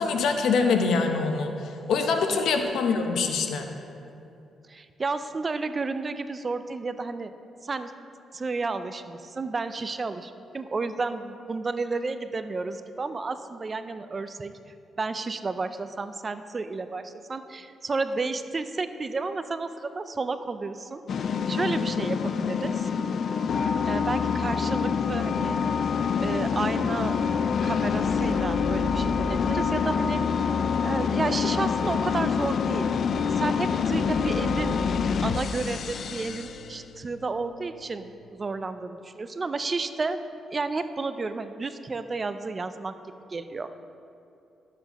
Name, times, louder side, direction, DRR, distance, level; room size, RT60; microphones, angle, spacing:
voice 1, 0.0-3.7, left 4 dB, 75° left, 5 dB, 0.8 m, -24 dB
voice 2, 4.7-7.3 7.6-7.9 8.3-14.5 15.0-21.0 21.5-22.9 23.8-25.6 26.2-27.2 27.6-30.5 30.8-32.9 33.3-34.8 35.2-40.2 40.5-43.0 43.3-43.7, right 3 dB, 35° right, 11 dB, 0.5 m, -31 dB
sound 1, 21.1-36.8, left 6 dB, 60° left, 0.3 m, -26 dB
sound 2, 26.2-38.2, right 2 dB, 30° left, 1.4 m, -41 dB
12.5 x 7.6 x 3.0 m, 2.6 s
cardioid pair, 70°, 0 cm